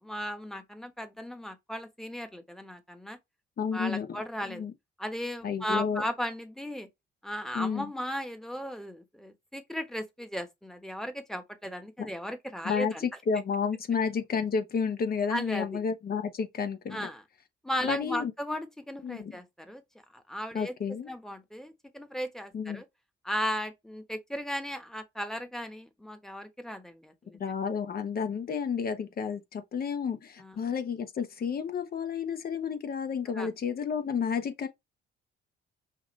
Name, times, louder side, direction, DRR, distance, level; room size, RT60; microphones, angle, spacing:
voice 1, 0.0-3.2 3.7-4.6 5.0-6.9 7.2-13.1 15.3-15.8 16.9-17.2 17.6-19.8 20.1-20.7 21.1-22.8 23.2-27.4 30.4-30.6 33.4-33.5, equal, ahead, 1.1 m, -36 dB
voice 2, 3.6-4.1 4.5-4.7 5.4-6.0 7.5-7.9 12.6-17.1 17.8-18.3 19.0-19.4 20.5-21.1 22.5-22.8 27.4-34.7, left 6 dB, 50° left, 1.0 m, -31 dB
5.7 x 2.5 x 3.2 m
cardioid pair, 90°, 20 cm